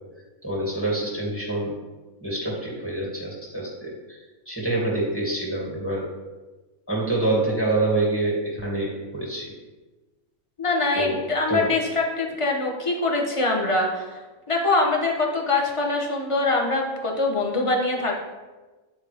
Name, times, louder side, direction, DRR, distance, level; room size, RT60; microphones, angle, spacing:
voice 1, 0.4-1.8 2.2-4.2 4.5-6.0 6.9-9.5 10.9-11.2 11.5-11.7, right 2 dB, 10° left, -4 dB, 2.6 m, -26 dB
voice 2, 10.6-14.2 14.5-18.1, left 2 dB, 25° left, 0 dB, 1.0 m, -23 dB
10.5 x 4.4 x 3.5 m, 1.2 s
omnidirectional pair, 1.5 m